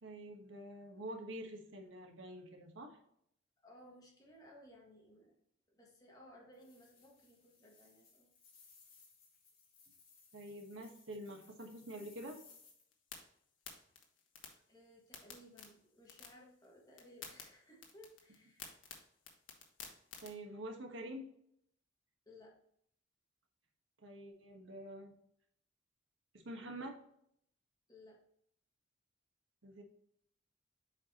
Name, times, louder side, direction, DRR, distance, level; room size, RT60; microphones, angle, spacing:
voice 1, 0.0-3.0 10.3-12.4 20.2-21.3 24.0-25.2 26.3-27.0 29.6-29.8, right 1 dB, 75° right, 3 dB, 1.2 m, -47 dB
voice 2, 3.6-5.4 5.7-8.3 14.7-18.8 22.2-22.6 27.9-28.2, left 1 dB, 20° left, -1 dB, 1.6 m, -60 dB
sound 1, 6.5-12.8, left 5 dB, 50° left, 2.6 m, -64 dB
sound 2, 12.7-20.3, left 6 dB, 85° left, 1.3 m, -55 dB
7.5 x 4.7 x 2.8 m, 0.70 s
head